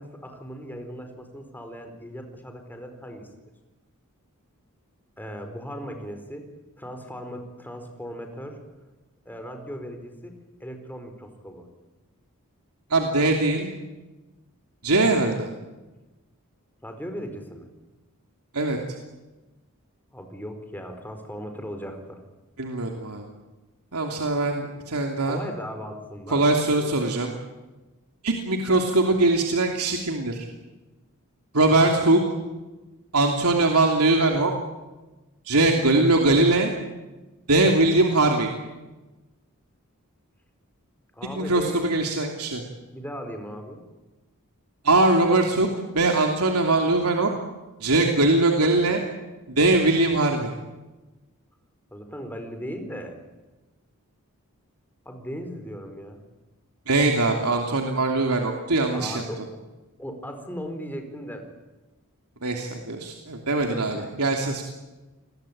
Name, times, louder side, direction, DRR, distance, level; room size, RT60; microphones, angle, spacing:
voice 1, 0.0-3.3 5.2-6.4 6.8-8.6 9.2-11.7 16.8-17.7 20.1-22.2 25.2-27.1 41.1-41.9 42.7-43.8 51.9-53.2 55.0-56.2 58.9-59.4 60.0-61.5 63.7-64.1, equal, 10° left, 6 dB, 4.5 m, -37 dB
voice 2, 12.9-13.7 14.8-15.5 18.5-18.8 22.6-23.2 23.9-25.4 26.3-27.3 28.2-30.5 31.5-32.2 33.1-34.5 35.5-36.7 37.5-38.5 41.3-42.6 44.8-45.7 45.9-47.3 47.8-49.0 49.6-50.5 56.9-59.2 62.4-64.6, right 2 dB, 85° right, 2 dB, 3.0 m, -21 dB
29.0 x 22.0 x 8.9 m, 1.1 s
head